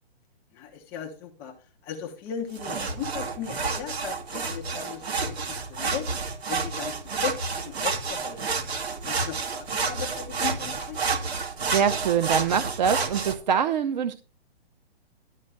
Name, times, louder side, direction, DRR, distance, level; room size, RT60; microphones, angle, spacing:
voice 1, 0.5-6.1 6.5-8.4 9.0-11.0, left 8 dB, 10° left, 1 dB, 0.4 m, -37 dB
sound 1, 2.5-13.3, right 4 dB, 75° right, 2.5 m, -30 dB
voice 2, 11.7-14.1, right 7 dB, 45° right, 10 dB, 0.8 m, -24 dB
12.0 x 4.4 x 7.4 m, 0.36 s
hypercardioid pair, 155°, 32 cm